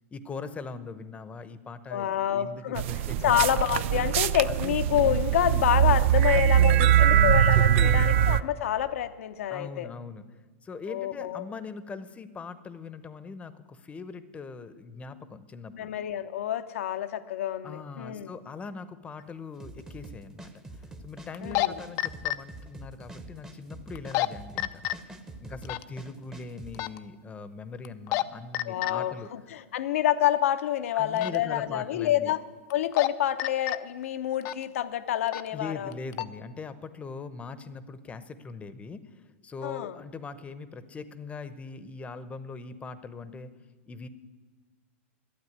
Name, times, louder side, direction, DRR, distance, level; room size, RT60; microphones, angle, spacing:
voice 1, 0.1-3.5 6.2-8.1 9.5-10.2 10.6-15.9 17.6-25.1 25.4-29.3 30.9-32.3 35.5-43.5 43.9-44.1, left 4 dB, 15° left, 14 dB, 0.9 m, -41 dB
voice 2, 1.9-2.8 3.2-9.9 10.9-11.4 15.7-18.3 21.4-21.7 28.7-32.4 32.7-35.9 39.6-40.0, left 11 dB, 80° left, 10 dB, 0.8 m, -28 dB
sound 1, 2.8-8.4, right 10 dB, 65° right, 0.5 m, -22 dB
sound 2, 19.3-19.4 21.3-21.7 22.0-22.4 24.0-24.3 24.6-24.9 25.6-25.8 26.7-27.0 27.8-28.2 28.5-28.9 31.2-31.4 32.7-33.1 33.4-33.8 34.4-34.6 35.3-35.5 35.9-36.3, left 18 dB, 45° left, 0.5 m, -28 dB
sound 3, 19.6-26.9, right 2 dB, 10° right, 1.0 m, -45 dB
12.0 x 9.0 x 9.5 m, 1.4 s
hypercardioid pair, 130°, 7 cm